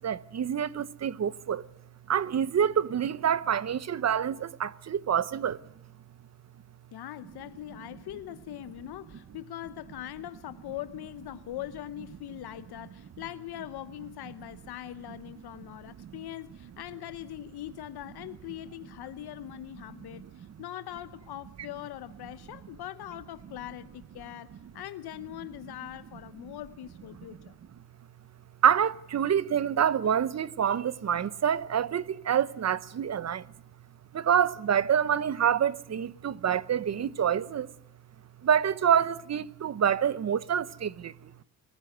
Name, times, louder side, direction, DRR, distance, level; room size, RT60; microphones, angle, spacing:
voice 1, 0.0-1.7 2.1-5.6 16.0-16.2 20.1-20.3 28.6-33.5 34.1-37.7 38.4-41.3, right 8 dB, 40° right, 0.8 m, -27 dB
voice 2, 6.9-27.5, left 13 dB, 75° left, 0.8 m, -41 dB
25.0 x 16.0 x 8.0 m
cardioid pair, 105°, 39 cm